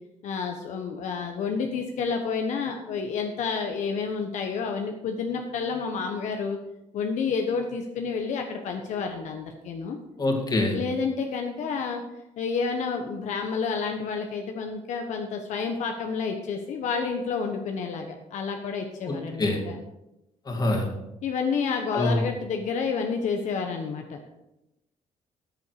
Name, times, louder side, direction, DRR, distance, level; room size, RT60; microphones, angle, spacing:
voice 1, 0.2-6.6 6.9-10.0 10.7-12.0 12.4-19.8 21.2-24.2, left 5 dB, 75° left, 4 dB, 1.2 m, -29 dB
voice 2, 10.2-10.8 19.1-19.6 20.5-20.9 21.9-22.2, left 2 dB, 30° left, 2 dB, 2.5 m, -25 dB
13.5 x 7.1 x 4.8 m, 0.92 s
cardioid pair, 125°, 13 cm